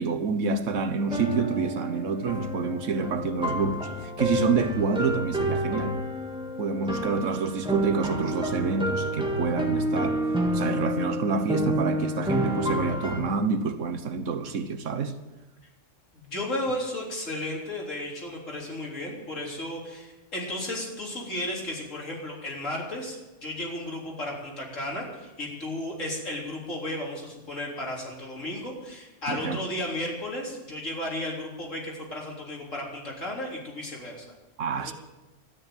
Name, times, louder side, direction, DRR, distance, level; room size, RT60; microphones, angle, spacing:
voice 1, 0.0-6.0 6.6-10.2 10.5-15.2 29.3-29.6 34.6-34.9, right 5 dB, 80° right, 1.4 m, -28 dB
sound 1, 1.0-13.2, equal, 5° right, 1.8 m, -29 dB
voice 2, 16.1-34.3 34.8-34.9, left 1 dB, 85° left, 4.1 m, -34 dB
13.0 x 10.0 x 9.2 m
omnidirectional pair, 1.3 m